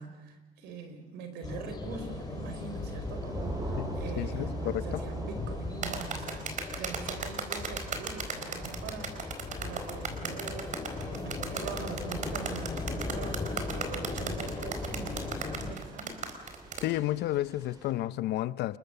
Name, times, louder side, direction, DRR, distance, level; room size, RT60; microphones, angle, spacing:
voice 1, 0.0-16.2, right 5 dB, 90° right, 4.6 m, -43 dB
sound 1, 1.4-15.7, left 2 dB, 25° left, 4.2 m, -38 dB
Thunder / Rain, 1.9-17.9, right 1 dB, 25° right, 5.6 m, -46 dB
voice 2, 3.8-5.0 16.8-18.8, left 14 dB, 80° left, 0.8 m, -32 dB
sound 2, 5.8-16.9, right 5 dB, 45° right, 4.4 m, -36 dB
29.5 x 22.0 x 6.9 m
cardioid pair, 110°, 17 cm